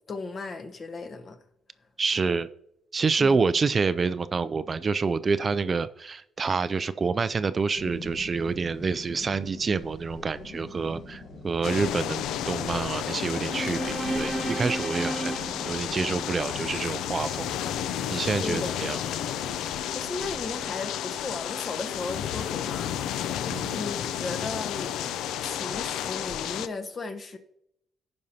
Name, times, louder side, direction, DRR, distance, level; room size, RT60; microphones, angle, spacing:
voice 1, 0.1-1.4 3.2-3.4 18.4-18.7 19.9-22.9 23.5-24.9 25.4-27.4, left 3 dB, 40° left, 1.1 m, -35 dB
voice 2, 2.0-2.5 2.9-17.5 18.1-19.0 23.5-23.8, right 4 dB, 35° right, 0.3 m, -27 dB
sound 1, 7.8-20.7, left 2 dB, 60° left, 3.0 m, -44 dB
sound 2, 11.6-26.7, left 10 dB, 90° left, 0.4 m, -32 dB
sound 3, 13.2-16.6, right 2 dB, 15° right, 0.9 m, -34 dB
15.5 x 5.3 x 2.8 m
cardioid pair, 110°, 0 cm